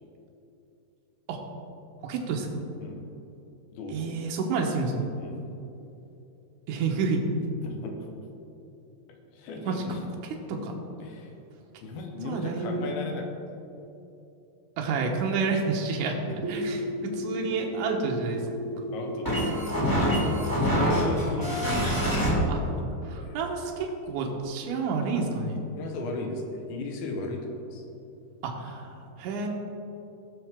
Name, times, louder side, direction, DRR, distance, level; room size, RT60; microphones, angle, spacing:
voice 1, 2.0-2.6 3.9-5.1 6.7-7.2 9.7-9.8 10.5-10.7 12.2-12.9 14.8-16.2 16.5-18.4 21.5-22.1 22.5-22.6 23.0-25.6 28.4-29.5, right 4 dB, 70° right, 0 dB, 2.4 m, -30 dB
voice 2, 3.7-4.3 5.2-5.5 7.6-8.2 9.3-10.0 11.0-11.3 11.8-13.4 16.3-16.5 18.9-20.1 20.6-23.4 25.8-27.8, left 2 dB, 85° left, 2 dB, 3.1 m, -37 dB
sound 1, 16.4-22.3, equal, 10° left, 1.2 m, -27 dB
17.5 x 6.5 x 3.7 m, 2.8 s
omnidirectional pair, 4.2 m